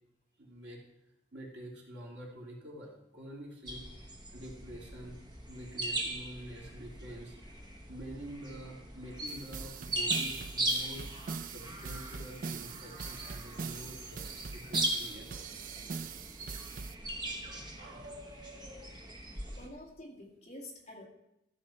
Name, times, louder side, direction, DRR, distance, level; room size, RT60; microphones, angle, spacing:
voice 1, 0.4-0.8 1.3-3.9 4.3-5.2 5.5-7.6 7.9-15.7 16.1-16.2 17.4-18.9, right 1 dB, 75° right, -2 dB, 2.7 m, -47 dB
sound 1, 3.7-19.7, right 1 dB, 25° right, 1.1 m, -39 dB
sound 2, 9.3-16.9, right 5 dB, 45° right, 0.4 m, -42 dB
voice 2, 19.6-21.1, left 1 dB, 35° left, -1 dB, 1.9 m, -48 dB
14.0 x 6.8 x 4.3 m, 0.87 s
head